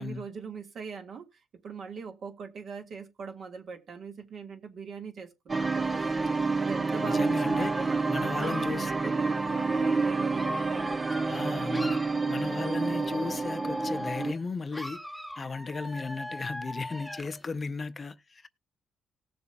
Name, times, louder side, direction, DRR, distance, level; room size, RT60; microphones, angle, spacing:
voice 1, 0.0-6.1 6.6-12.0, right 5 dB, 60° right, 1.7 m, -42 dB
Dog / Alarm, 5.5-11.4 11.7-14.4 14.7-17.4, left 1 dB, ahead, 0.9 m, -40 dB
sound 1, 5.5-14.3, right 4 dB, 30° right, 0.5 m, -29 dB
voice 2, 7.0-8.9 11.3-15.0 15.4-18.5, left 4 dB, 35° left, 0.6 m, -36 dB
18.5 x 6.9 x 2.2 m
cardioid pair, 90°, 0 cm